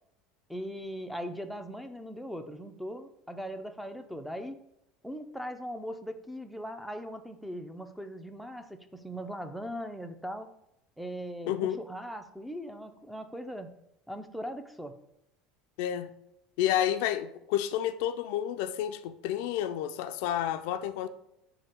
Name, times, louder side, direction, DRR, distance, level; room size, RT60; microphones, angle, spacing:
voice 1, 0.5-4.6 5.0-10.5 11.0-13.7 14.1-15.0, equal, ahead, 7 dB, 0.5 m, -39 dB
voice 2, 11.5-11.8 15.8-16.1 16.6-21.1, left 11 dB, 75° left, 9 dB, 0.4 m, -30 dB
7.6 x 2.8 x 4.4 m, 0.84 s
cardioid pair, 150°, 0 cm